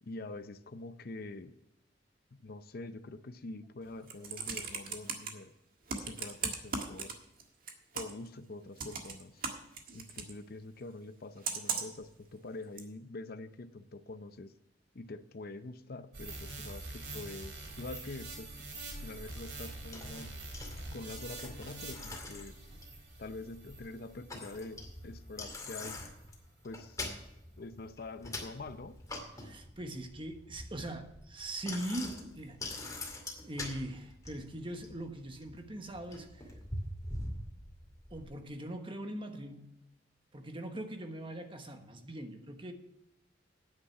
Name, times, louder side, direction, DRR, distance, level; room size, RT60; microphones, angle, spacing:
voice 1, 0.0-1.5 2.3-5.5 6.0-7.2 7.9-9.4 9.9-14.5 14.9-20.4 20.9-22.6 23.2-26.0 26.6-27.0 27.6-29.0, left 2 dB, 55° left, 0.6 m, -45 dB
Computer keyboard, 3.9-5.3 5.9-7.4 7.7-8.3 8.8-10.3 11.4-12.0 12.8-12.9, right 5 dB, 55° right, 1.6 m, -37 dB
sound 1, 16.1-24.8 25.3-25.4, right 2 dB, 70° right, 3.2 m, -45 dB
Bicycle, 19.4-38.3, left 2 dB, 20° left, 2.3 m, -45 dB
voice 2, 29.4-33.0 33.4-36.5 38.1-39.8 40.3-42.7, right 1 dB, 30° right, 1.2 m, -41 dB
9.9 x 9.0 x 5.8 m
head